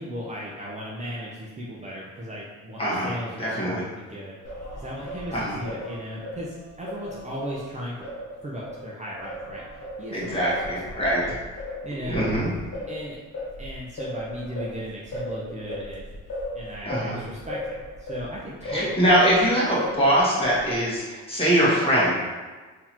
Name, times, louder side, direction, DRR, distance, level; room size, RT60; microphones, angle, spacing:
voice 1, 0.0-8.0 8.4-9.6 10.0-11.3 11.8-12.3 12.9-13.2 13.6-16.1 16.5-18.9, equal, 25° right, -5 dB, 0.6 m, -36 dB
voice 2, 2.8-3.1 3.4-3.8 5.3-5.6 10.1-11.2 12.0-12.5 16.8-17.2 18.7-22.1, equal, 20° left, -7 dB, 1.4 m, -22 dB
Singing, 4.4-8.8 9.2-19.5 19.8-20.8, left 1 dB, 55° left, 1.0 m, -36 dB
3.8 x 2.8 x 2.9 m, 1.3 s
cardioid pair, 90°, 30 cm